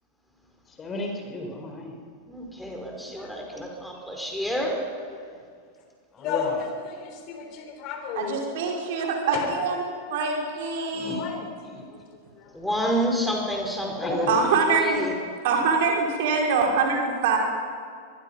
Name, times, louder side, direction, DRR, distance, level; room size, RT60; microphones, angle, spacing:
voice 1, 0.8-2.0 6.1-6.5 10.9-11.3 13.8-14.4, left 1 dB, 20° left, 3 dB, 4.3 m, -33 dB
voice 2, 2.3-4.8 12.5-15.1, equal, 5° left, 1 dB, 4.8 m, -29 dB
voice 3, 2.8-3.3 5.1-5.4 6.2-8.3 9.3-9.5 11.2-11.5 11.9-12.0 12.3-12.7, left 7 dB, 40° left, 4 dB, 3.3 m, -34 dB
voice 4, 8.2-9.8 10.1-11.2 14.3-15.1 15.4-17.4, right 4 dB, 50° right, 0 dB, 4.8 m, -24 dB
24.5 x 21.0 x 5.5 m, 2.1 s
figure-of-eight pair, 90°, 0 cm